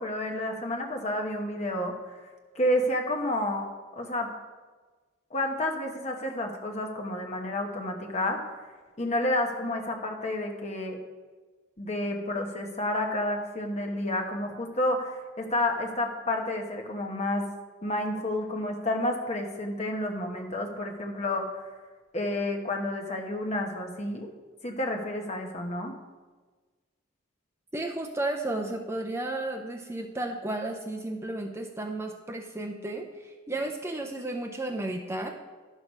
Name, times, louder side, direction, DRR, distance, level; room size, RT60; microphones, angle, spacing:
voice 1, 0.0-2.1 2.5-3.7 4.0-4.3 5.3-8.4 9.0-11.0 11.8-17.4 17.8-21.6 22.1-24.3 24.6-25.9, left 1 dB, 35° left, 2 dB, 1.2 m, -30 dB
voice 2, 27.7-35.3, right 2 dB, 15° right, 3 dB, 0.5 m, -33 dB
11.0 x 6.3 x 5.3 m, 1.3 s
head